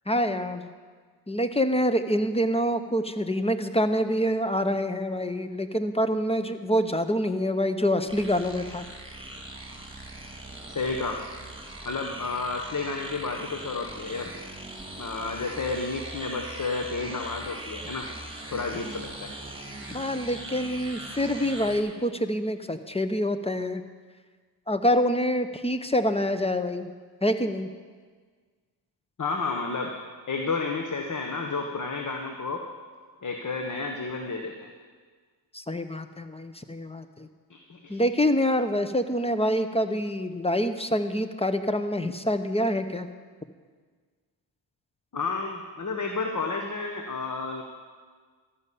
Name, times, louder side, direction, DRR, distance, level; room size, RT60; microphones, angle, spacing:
voice 1, 0.1-0.7 1.3-8.8 19.8-23.8 24.7-26.9 27.2-27.7 35.5-37.3 37.9-43.1, equal, 15° left, 9 dB, 0.8 m, -26 dB
sound 1, 8.1-21.8, right 1 dB, 10° right, 2.1 m, -41 dB
voice 2, 10.7-11.2 11.8-14.3 15.0-18.1 18.5-19.3 29.2-29.9 30.3-32.6 33.2-34.7 37.5-38.0 45.1-47.6, left 4 dB, 40° left, 3 dB, 1.2 m, -31 dB
13.0 x 5.6 x 8.4 m, 1.5 s
cardioid pair, 50°, 45 cm